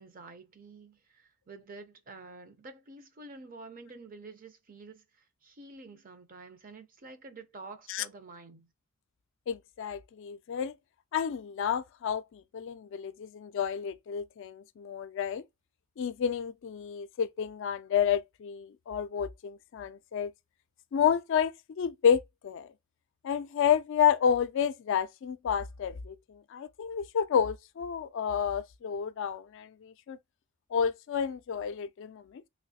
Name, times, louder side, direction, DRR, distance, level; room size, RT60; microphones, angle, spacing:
voice 1, 0.0-8.7, right 3 dB, 40° right, 0.6 m, -49 dB
voice 2, 9.5-10.7 11.1-15.4 16.0-20.3 20.9-22.7 23.2-30.2 30.7-32.4, left 8 dB, 60° left, 0.3 m, -30 dB
3.2 x 3.0 x 2.7 m
head